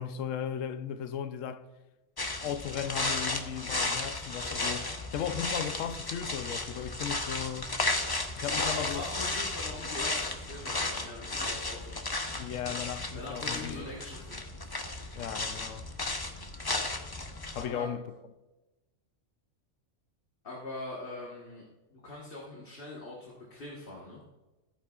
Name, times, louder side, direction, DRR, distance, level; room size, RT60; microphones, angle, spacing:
voice 1, 0.0-1.7 2.4-7.8 8.3-9.0 12.3-13.9 15.1-15.9 17.5-18.0, left 9 dB, 85° left, 1.0 m, -36 dB
sound 1, 2.2-17.7, left 2 dB, 25° left, 0.6 m, -34 dB
voice 2, 8.5-12.2 13.1-14.4 17.6-17.9 20.4-21.6 21.9-24.2, left 2 dB, 45° left, 1.5 m, -42 dB
14.0 x 9.2 x 2.4 m
omnidirectional pair, 1.3 m